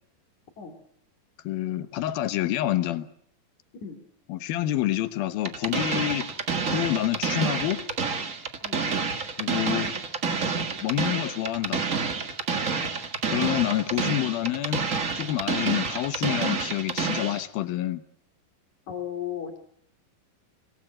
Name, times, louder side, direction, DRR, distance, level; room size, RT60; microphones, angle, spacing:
voice 1, 1.4-3.1 4.3-6.3 6.7-7.8 9.4-9.9 10.8-11.8 13.3-14.8 15.2-18.0, left 13 dB, 80° left, 12 dB, 2.9 m, -27 dB
sound 1, 5.4-17.4, right 5 dB, 55° right, 0.8 m, -28 dB
voice 2, 18.9-19.6, left 9 dB, 55° left, 6 dB, 3.9 m, -35 dB
25.5 x 19.5 x 7.5 m, 0.65 s
omnidirectional pair, 4.2 m